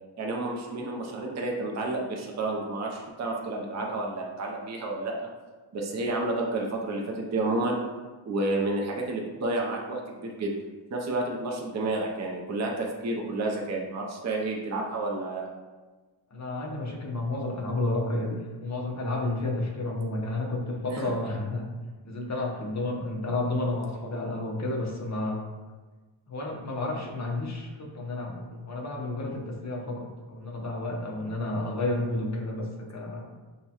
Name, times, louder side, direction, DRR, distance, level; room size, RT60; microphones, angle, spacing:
voice 1, 0.2-5.3 5.7-7.8 8.3-10.5 10.9-15.5 20.9-21.0, right 2 dB, 40° right, -1 dB, 0.5 m, -30 dB
voice 2, 16.3-21.7 22.0-25.5 26.3-33.2, left 2 dB, 40° left, 0 dB, 0.7 m, -31 dB
6.5 x 2.2 x 2.8 m, 1.3 s
wide cardioid pair, 145°, 44 cm